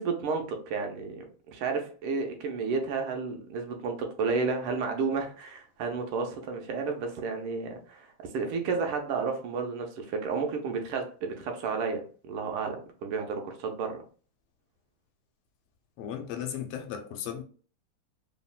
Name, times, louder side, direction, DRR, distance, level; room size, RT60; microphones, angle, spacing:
voice 1, 0.0-8.1 8.3-14.0, right 4 dB, 85° right, 1.5 m, -32 dB
voice 2, 16.0-17.4, left 9 dB, 90° left, 1.5 m, -36 dB
3.7 x 2.0 x 2.2 m
omnidirectional pair, 2.4 m